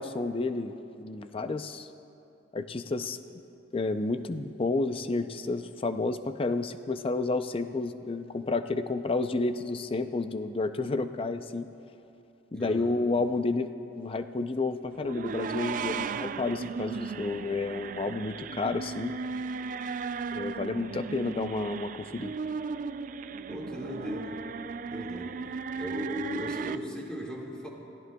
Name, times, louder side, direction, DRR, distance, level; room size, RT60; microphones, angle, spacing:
voice 1, 0.0-1.9 2.5-3.2 3.7-11.7 12.5-13.7 14.0-19.1 20.3-22.3, left 3 dB, 30° left, 9 dB, 0.5 m, -31 dB
voice 2, 12.5-13.0 23.5-24.4 24.9-25.4 25.8-27.7, left 1 dB, 5° left, -3 dB, 1.9 m, -37 dB
sound 1, 15.0-26.8, right 5 dB, 45° right, 0.3 m, -36 dB
28.5 x 16.0 x 2.3 m, 2.8 s
head